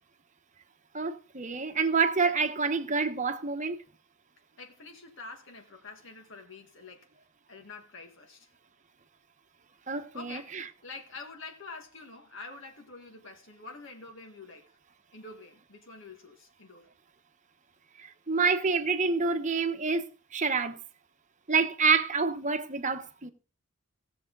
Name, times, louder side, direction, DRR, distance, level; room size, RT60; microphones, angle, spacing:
voice 1, 0.9-3.8 9.9-10.6 18.0-20.1 20.3-20.8 21.5-23.3, right 4 dB, 35° right, 1.0 m, -27 dB
voice 2, 4.6-7.1 7.5-8.5 10.1-14.8 15.1-16.9, left 3 dB, 60° left, 1.7 m, -46 dB
17.0 x 7.0 x 3.9 m
head